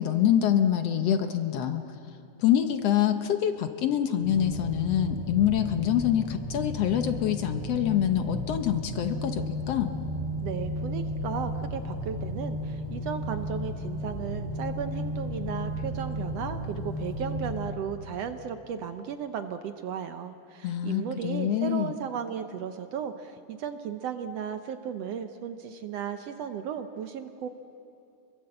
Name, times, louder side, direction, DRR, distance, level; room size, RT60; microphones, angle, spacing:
voice 1, 0.0-1.8 2.4-10.0 20.6-21.9, left 10 dB, 65° left, 8 dB, 1.8 m, -25 dB
sound 1, 4.2-17.6, left 1 dB, 45° left, 3.8 m, -34 dB
voice 2, 10.4-27.5, right 8 dB, 70° right, 8 dB, 1.7 m, -35 dB
29.5 x 22.0 x 7.9 m, 2.6 s
omnidirectional pair, 3.4 m